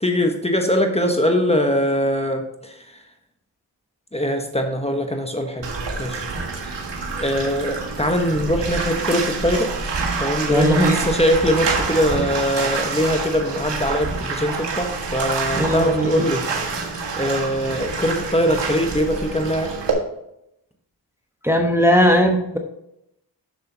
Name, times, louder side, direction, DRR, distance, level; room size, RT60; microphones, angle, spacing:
voice 1, 0.0-2.8 4.1-5.7 6.0-6.3 6.6-6.8 7.1-9.7 10.2-16.4 16.8-19.7, equal, 15° left, 4 dB, 1.3 m, -22 dB
Bathtub (filling or washing), 5.6-19.9, right 4 dB, 70° right, 1.6 m, -27 dB
voice 2, 10.5-11.0 15.6-16.2 21.4-22.6, equal, 5° right, 2 dB, 1.1 m, -18 dB
6.9 x 6.7 x 4.0 m, 0.81 s
cardioid pair, 45°, 44 cm